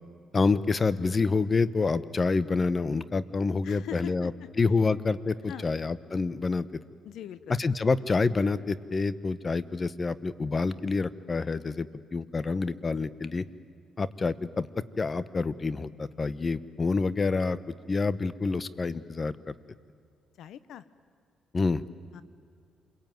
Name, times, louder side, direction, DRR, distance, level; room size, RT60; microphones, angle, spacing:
voice 1, 0.3-4.3 4.6-6.7 7.5-13.4 14.0-14.7 15.0-19.5 21.5-21.8, left 4 dB, 30° left, 16 dB, 1.0 m, -27 dB
voice 2, 3.6-4.5 5.5-5.7 7.0-7.6 20.4-20.8 22.1-22.2, left 10 dB, 75° left, 15 dB, 1.0 m, -41 dB
28.0 x 22.5 x 9.3 m, 2.3 s
cardioid pair, 90°, 0 cm